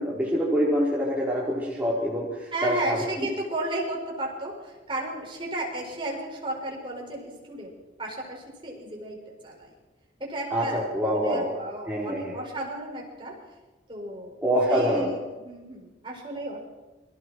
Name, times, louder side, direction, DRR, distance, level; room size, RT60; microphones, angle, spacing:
voice 1, 0.0-3.0 10.5-11.5 11.9-12.3 14.4-15.1, equal, 10° right, -6 dB, 4.5 m, -25 dB
voice 2, 2.5-7.7 8.0-9.2 9.4-9.7 10.2-10.8 11.1-13.3 13.9-14.4 14.7-16.6, right 1 dB, 30° right, -1 dB, 6.6 m, -33 dB
28.5 x 24.5 x 4.8 m, 1.2 s
head